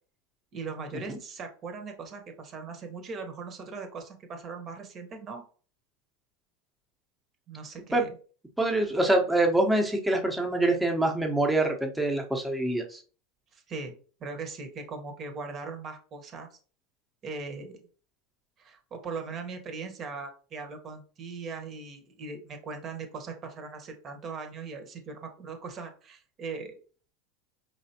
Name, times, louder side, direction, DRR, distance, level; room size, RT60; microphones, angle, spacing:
voice 1, 0.5-5.4 7.5-8.1 13.5-13.9 14.2-16.6 17.2-17.8 18.6-26.7, right 4 dB, 40° right, 5 dB, 1.1 m, -39 dB
voice 2, 8.6-13.0, right 2 dB, 5° right, 2 dB, 0.9 m, -25 dB
4.8 x 3.3 x 2.8 m, 0.40 s
hypercardioid pair, 105°, 0 cm